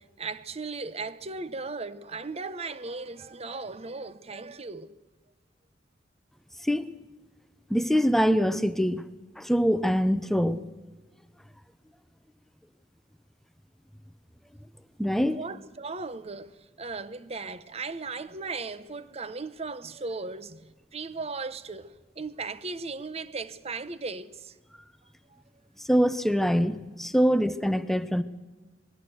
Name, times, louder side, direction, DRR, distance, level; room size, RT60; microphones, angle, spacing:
voice 1, 0.0-4.9 15.3-24.6 25.3-25.4, right 4 dB, 35° right, 0.9 m, -37 dB
voice 2, 7.7-9.1 9.4-10.6 15.0-15.4 25.8-28.2, equal, ahead, 0.7 m, -24 dB
20.5 x 15.5 x 8.0 m
head